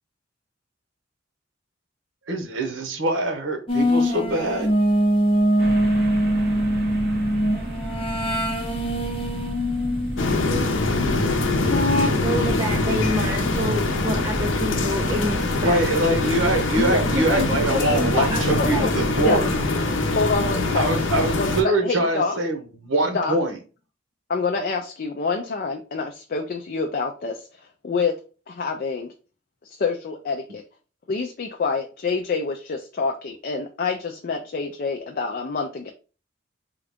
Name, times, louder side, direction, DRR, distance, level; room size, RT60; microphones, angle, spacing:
voice 1, 2.3-4.7 15.6-19.5 20.7-23.6, right 1 dB, 90° right, 0.9 m, -24 dB
sound 1, 3.7-10.3 11.7-12.1, equal, 30° left, 0.8 m, -22 dB
sound 2, 5.6-19.7, equal, 55° right, 1.6 m, -33 dB
sound 3, 10.2-21.6, left 2 dB, 90° left, 0.6 m, -24 dB
voice 2, 12.1-15.9 16.8-19.5, equal, 20° right, 0.5 m, -28 dB
voice 3, 18.5-18.9 19.2-19.4 20.1-21.0 21.4-21.5 21.8-22.4 23.1-23.4 24.3-28.2 28.5-29.1 29.6-30.6 31.1-35.9, left 4 dB, 50° left, 0.4 m, -27 dB
3.7 x 2.3 x 3.5 m
head